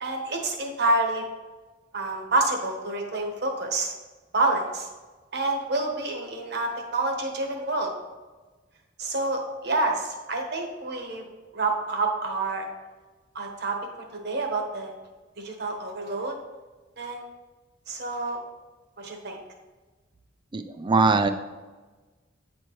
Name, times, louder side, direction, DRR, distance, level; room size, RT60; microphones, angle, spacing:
voice 1, 0.0-1.2 1.9-3.9 4.3-4.9 5.3-7.9 9.0-11.2 11.5-12.6 13.3-13.8 14.1-14.9 15.4-16.4 17.0-17.2 17.9-18.4 19.0-19.4, right 2 dB, 60° right, 2 dB, 1.1 m, -28 dB
voice 2, 20.5-21.3, right 3 dB, 25° right, 9 dB, 0.4 m, -21 dB
8.8 x 4.4 x 3.1 m, 1.3 s
head